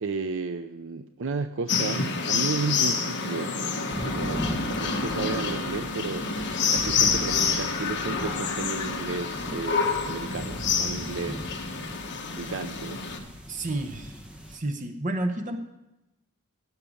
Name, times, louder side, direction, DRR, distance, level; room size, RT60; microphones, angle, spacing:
voice 1, 0.0-6.3 6.7-11.6 12.3-13.0, right 4 dB, 60° right, 10 dB, 0.5 m, -33 dB
sound 1, 1.7-13.2, left 5 dB, 55° left, 1.5 m, -28 dB
sound 2, 3.9-14.6, equal, 5° right, 1.2 m, -39 dB
sound 3, 4.8-6.9 7.5-9.5, left 7 dB, 20° left, 1.6 m, -44 dB
voice 2, 13.5-14.2 14.5-15.6, right 1 dB, 35° right, 5 dB, 0.9 m, -30 dB
16.0 x 6.6 x 7.1 m, 0.95 s
head